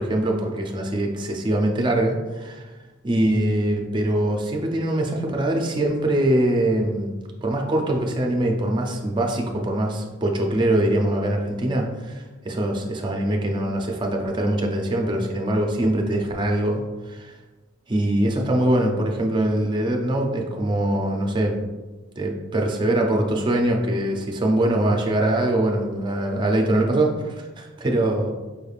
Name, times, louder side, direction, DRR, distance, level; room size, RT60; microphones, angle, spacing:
voice 1, 0.0-2.7 3.0-7.1 7.4-17.4 17.9-21.6 22.2-28.3, right 1 dB, 25° right, 1 dB, 0.5 m, -23 dB
5.0 x 3.3 x 2.4 m, 1.2 s
head